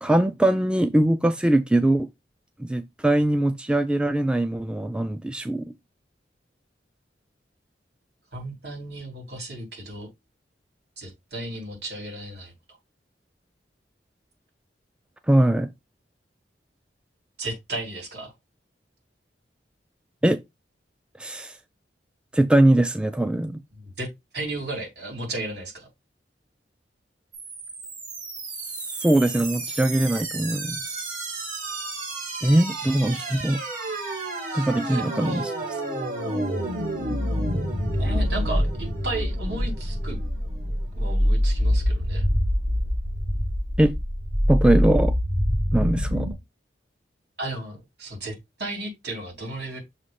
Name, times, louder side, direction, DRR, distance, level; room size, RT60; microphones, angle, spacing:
voice 1, 0.0-2.1 2.6-5.7 15.3-15.7 20.2-20.4 21.2-21.6 22.3-23.6 29.0-31.1 32.4-33.6 34.5-35.5 43.8-44.0 44.5-45.1 45.7-46.3, right 1 dB, 5° right, 0.3 m, -21 dB
voice 2, 8.3-10.1 11.0-12.5 17.4-18.3 24.0-24.1 24.3-25.9 34.5-35.4 38.0-40.2 40.9-42.3 47.4-49.8, right 2 dB, 65° right, 3.5 m, -34 dB
sound 1, 27.3-46.3, equal, 50° right, 2.7 m, -27 dB
6.5 x 2.9 x 5.6 m
head